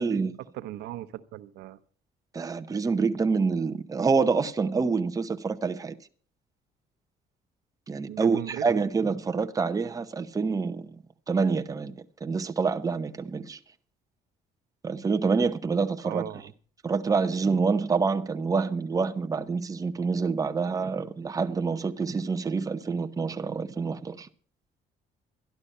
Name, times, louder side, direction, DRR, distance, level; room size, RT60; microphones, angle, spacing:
voice 1, 0.0-0.4 2.3-5.9 7.9-10.9 11.3-13.6 14.8-16.2 16.8-24.3, right 4 dB, 20° right, 0.9 m, -27 dB
voice 2, 0.5-1.8 8.1-8.6 16.0-16.5, right 14 dB, 85° right, 0.9 m, -38 dB
12.5 x 11.5 x 5.4 m
cardioid pair, 110°, 17 cm